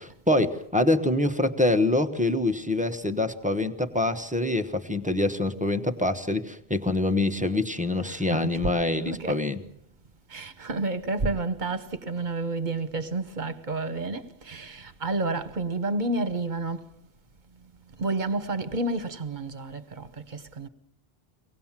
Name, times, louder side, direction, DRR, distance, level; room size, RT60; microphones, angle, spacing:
voice 1, 0.0-9.6, left 2 dB, 10° right, 1.0 m, -25 dB
voice 2, 8.1-8.6 9.1-9.4 10.3-16.9 18.0-20.7, right 3 dB, 50° right, 1.3 m, -30 dB
24.5 x 18.5 x 7.3 m
omnidirectional pair, 1.1 m